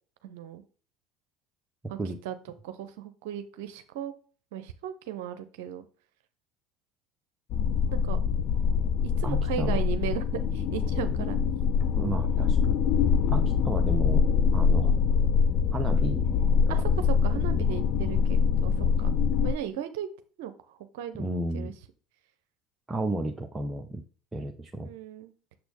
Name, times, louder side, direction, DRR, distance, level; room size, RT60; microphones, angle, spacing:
voice 1, 0.2-0.6 1.9-2.0 2.2-2.4 2.6-4.1 4.5-5.9 7.9-8.2 9.0-11.4 16.7-19.1 19.4-20.1 20.4-21.7 24.8-25.3, right 10 dB, 70° right, 9 dB, 0.7 m, -36 dB
sound 1, 7.5-19.5, left 6 dB, 55° left, 0.5 m, -24 dB
voice 2, 9.2-9.8 12.0-12.9 13.3-14.2 14.5-14.9 15.7-16.8 17.5-17.7 18.8-19.1 21.2-21.7 22.9-24.0 24.3-24.9, right 1 dB, 15° right, 2 dB, 0.8 m, -33 dB
7.0 x 6.1 x 3.4 m, 0.38 s
hypercardioid pair, 70°, 0 cm